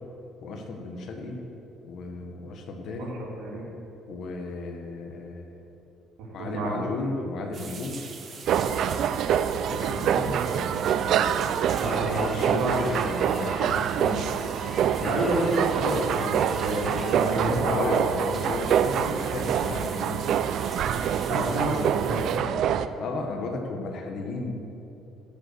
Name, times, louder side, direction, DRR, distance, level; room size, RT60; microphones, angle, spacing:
voice 1, 0.4-1.4 1.8-3.1 4.1-5.4 6.3-8.0 9.7-11.4 12.1-14.3 14.8-15.2 17.5-18.0 18.3-20.3 21.3-21.8 23.0-24.5, left 3 dB, 50° left, 2 dB, 1.2 m, -34 dB
voice 2, 6.2-6.9 11.7-12.9 15.1-17.9 21.3-22.2, right 2 dB, 80° right, -3 dB, 2.8 m, -28 dB
sound 1, 7.5-22.4, right 5 dB, 35° right, 1.0 m, -44 dB
sound 2, 8.5-22.9, right 9 dB, 55° right, 0.4 m, -26 dB
sound 3, 11.7-17.3, left 1 dB, 10° left, 1.0 m, -45 dB
15.5 x 5.4 x 6.7 m, 2.9 s
cardioid pair, 165°, 0 cm